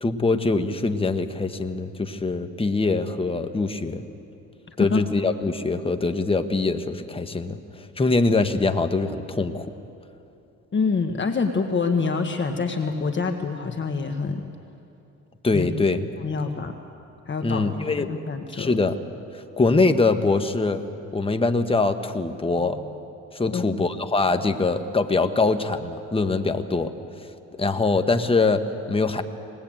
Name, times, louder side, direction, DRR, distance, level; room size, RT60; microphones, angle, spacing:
voice 1, 0.0-4.0 4.8-7.6 8.0-9.7 15.4-16.1 17.4-18.1 18.5-19.0 19.3-20.8 21.1-22.9 23.3-26.9 27.6-29.2, left 3 dB, 20° left, 7 dB, 1.2 m, -23 dB
voice 2, 10.7-14.4 15.5-15.7 16.2-16.7 17.3-17.7 18.0-18.7 23.5-23.8, left 4 dB, 40° left, 5 dB, 1.5 m, -26 dB
20.5 x 20.0 x 8.9 m, 2.7 s
cardioid pair, 90°, 30 cm